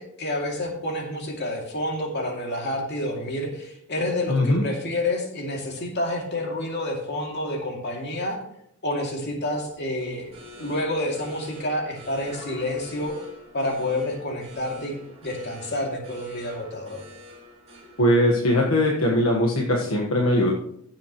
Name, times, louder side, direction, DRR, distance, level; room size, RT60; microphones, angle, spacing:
voice 1, 0.0-8.4 8.8-13.1 13.5-15.0 15.2-17.0, left 1 dB, 55° left, 1 dB, 2.6 m, -29 dB
voice 2, 4.3-4.6 18.0-20.5, left 1 dB, 70° left, -2 dB, 1.4 m, -20 dB
sound 1, 9.6-19.2, left 1 dB, 30° right, 3.6 m, -46 dB
16.0 x 7.5 x 3.1 m, 0.75 s
head